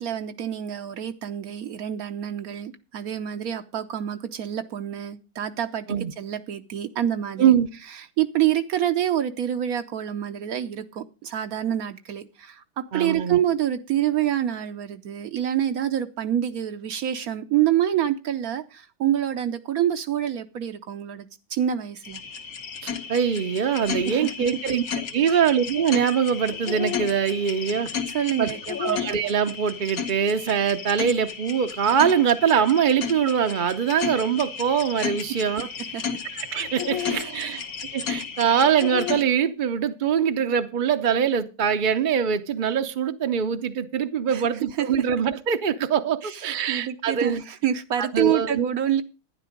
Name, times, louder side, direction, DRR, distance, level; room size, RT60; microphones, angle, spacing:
voice 1, 0.0-5.9 6.2-7.4 8.2-22.2 24.0-24.3 25.3-25.4 28.1-29.0 35.9-36.0 37.0-37.6 44.3-44.4 44.8-44.9 46.2-49.0, right 11 dB, 75° right, 1.2 m, -27 dB
voice 2, 12.9-13.4 22.8-24.8 25.1-27.9 28.4-28.5 28.8-35.7 36.3-37.6 37.9-47.4 48.0-48.7, right 7 dB, 50° right, 0.6 m, -23 dB
sound 1, 22.0-39.2, left 7 dB, 70° left, 1.6 m, -33 dB
11.5 x 10.0 x 5.1 m
omnidirectional pair, 1.6 m